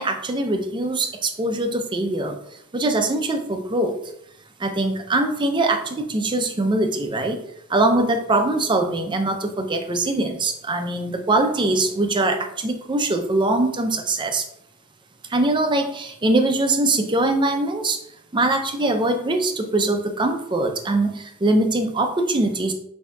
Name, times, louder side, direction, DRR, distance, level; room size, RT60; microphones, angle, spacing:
voice 1, 0.0-2.4 2.7-4.0 4.6-7.4 7.7-14.4 15.3-18.0 18.3-22.7, right 2 dB, 20° right, 5 dB, 0.5 m, -22 dB
6.6 x 2.7 x 2.3 m, 0.75 s
head